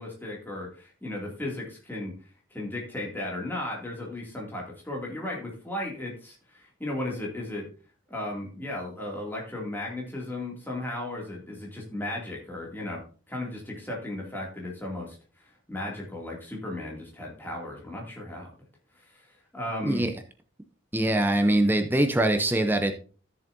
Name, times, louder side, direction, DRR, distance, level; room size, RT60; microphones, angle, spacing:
voice 1, 0.0-2.1 2.5-7.7 8.1-13.0 13.3-18.5 19.0-20.1, left 1 dB, 10° left, -2 dB, 2.5 m, -35 dB
voice 2, 20.9-22.9, right 1 dB, 10° right, 6 dB, 0.6 m, -23 dB
13.5 x 7.1 x 2.7 m, 0.38 s
head